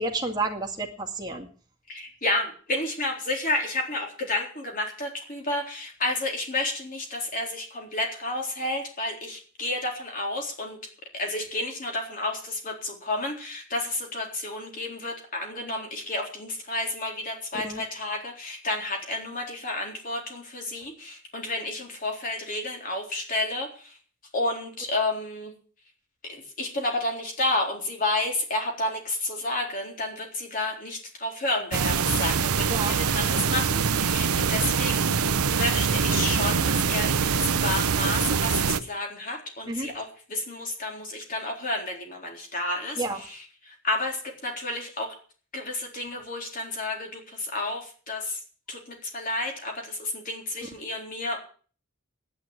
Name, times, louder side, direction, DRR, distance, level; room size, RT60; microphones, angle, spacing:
voice 1, 0.0-1.5 17.6-17.8 32.7-33.0 39.7-39.9 43.0-43.2, right 2 dB, 20° right, 2 dB, 2.1 m, -30 dB
voice 2, 1.9-10.8 11.1-24.0 24.3-25.5 26.2-45.2 45.5-48.4 48.7-51.4, left 2 dB, 40° left, 1 dB, 3.8 m, -31 dB
sound 1, 31.7-38.8, right 6 dB, 85° right, 0.8 m, -24 dB
11.0 x 9.7 x 9.2 m, 0.43 s
head